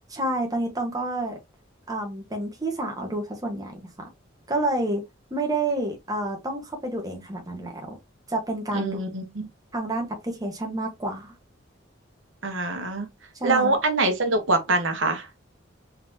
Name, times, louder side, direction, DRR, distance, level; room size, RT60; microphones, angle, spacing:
voice 1, 0.1-1.4 1.9-3.8 4.5-5.0 5.3-8.0 8.3-9.0 9.7-11.3 13.3-13.7, right 1 dB, 20° right, 1.3 m, -29 dB
voice 2, 8.7-9.5 12.4-13.1 13.4-15.3, right 2 dB, 70° right, 1.2 m, -24 dB
3.9 x 3.8 x 2.8 m
head